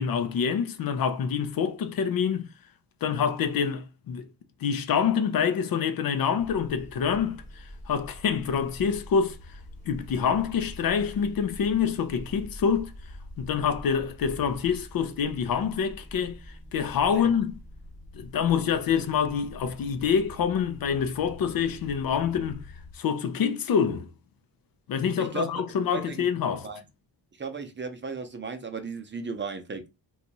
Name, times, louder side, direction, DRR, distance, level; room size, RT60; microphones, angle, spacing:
voice 1, 0.0-2.5 3.0-4.3 4.6-9.4 9.9-12.9 13.4-16.4 16.7-17.6 18.1-22.6 22.9-24.1 24.9-26.7, left 7 dB, 60° left, 0.5 m, -26 dB
sound 1, 6.4-22.9, left 1 dB, 20° left, 0.8 m, -45 dB
voice 2, 25.2-25.5 25.9-26.3 26.6-26.8 27.4-29.9, right 4 dB, 30° right, 0.6 m, -35 dB
2.7 x 2.4 x 4.0 m
cardioid pair, 115°, 40 cm